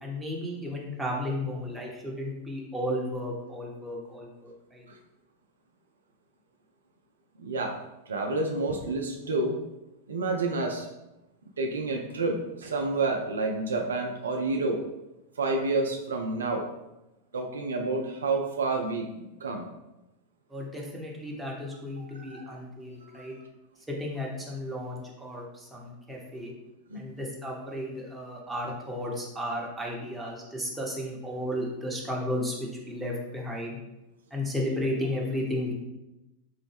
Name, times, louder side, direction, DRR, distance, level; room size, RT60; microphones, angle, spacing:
voice 1, 0.0-4.9 20.5-23.3 23.9-26.5 26.9-33.8 34.3-35.7, left 1 dB, 10° right, -2 dB, 0.8 m, -34 dB
voice 2, 7.4-7.8 8.1-9.6 10.1-10.9 11.6-14.8 15.4-16.7 17.3-19.7 22.1-22.6 23.1-23.3 26.9-27.0, right 3 dB, 70° right, 2 dB, 0.3 m, -29 dB
3.7 x 2.0 x 3.3 m, 0.96 s
figure-of-eight pair, 90°, 0 cm